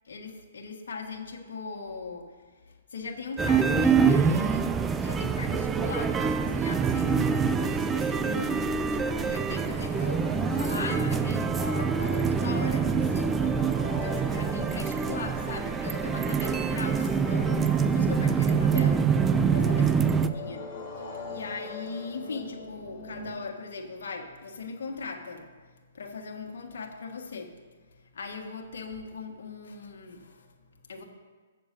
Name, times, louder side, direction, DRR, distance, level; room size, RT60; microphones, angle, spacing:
voice 1, 0.1-4.7 5.0-13.5 13.9-20.0 20.3-20.6 21.0-27.6 27.9-31.0, left 4 dB, 70° left, 2 dB, 1.4 m, -39 dB
sound 1, 3.4-20.3, right 6 dB, 15° right, 0.4 m, -25 dB
sound 2, 8.8-23.3, left 2 dB, 25° left, 2.2 m, -41 dB
7.7 x 6.8 x 6.6 m, 1.5 s
hypercardioid pair, 140°, 0 cm